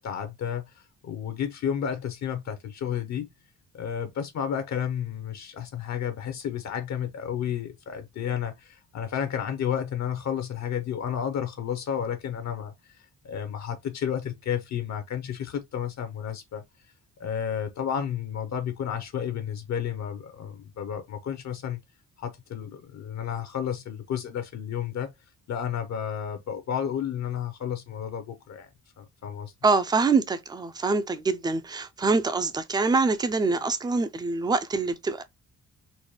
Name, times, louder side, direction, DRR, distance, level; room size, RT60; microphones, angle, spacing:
voice 1, 0.0-3.3 3.7-16.6 17.2-21.8 22.2-25.1 25.5-28.7 29.0-29.5, left 8 dB, 60° left, 0.7 m, -32 dB
voice 2, 29.6-35.2, right 4 dB, 15° right, 0.3 m, -25 dB
4.0 x 2.2 x 3.0 m
cardioid pair, 135°, 31 cm